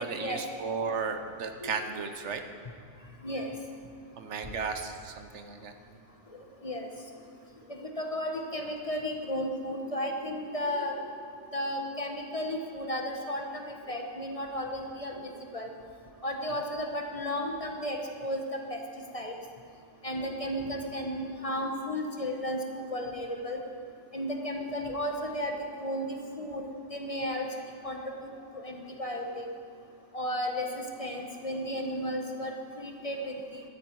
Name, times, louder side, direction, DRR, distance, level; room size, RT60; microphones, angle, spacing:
voice 1, 0.0-2.4 4.2-5.7, right 5 dB, 70° right, 7 dB, 1.1 m, -34 dB
voice 2, 6.3-6.9 7.7-11.1 11.5-15.7 16.2-18.8 19.1-19.3 20.0-23.6 24.1-27.5 27.8-29.5 30.1-33.6, equal, 30° left, 2 dB, 1.1 m, -34 dB
13.5 x 12.0 x 4.6 m, 2.4 s
omnidirectional pair, 1.3 m